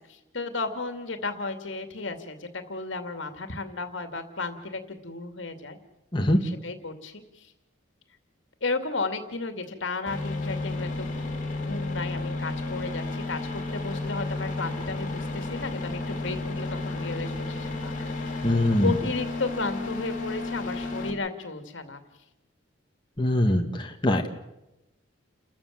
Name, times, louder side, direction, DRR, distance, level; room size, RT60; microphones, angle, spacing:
voice 1, 0.1-5.8 6.2-7.5 8.6-11.1 11.6-18.3 18.8-22.0, left 3 dB, 70° left, 7 dB, 2.5 m, -34 dB
sound 1, 10.1-21.1, left 2 dB, 45° left, 3.5 m, -32 dB
voice 2, 18.4-18.9 23.2-24.3, left 1 dB, 25° left, 3 dB, 1.7 m, -23 dB
29.5 x 14.0 x 7.4 m, 0.94 s
head